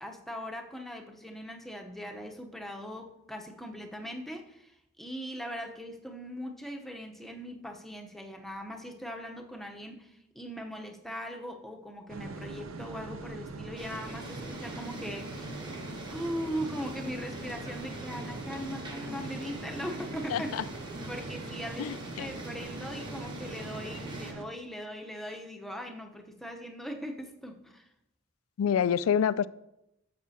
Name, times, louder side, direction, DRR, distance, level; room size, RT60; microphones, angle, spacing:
voice 1, 0.0-4.7 5.0-15.5 16.1-20.5 21.1-27.8, equal, ahead, 0.8 m, -40 dB
sound 1, 12.1-24.5, right 3 dB, 85° right, 0.7 m, -42 dB
sound 2, 13.8-24.3, right 1 dB, 25° right, 1.4 m, -43 dB
voice 2, 20.3-20.6 21.8-22.3 28.6-29.5, left 8 dB, 90° left, 0.3 m, -27 dB
12.0 x 7.2 x 2.8 m
head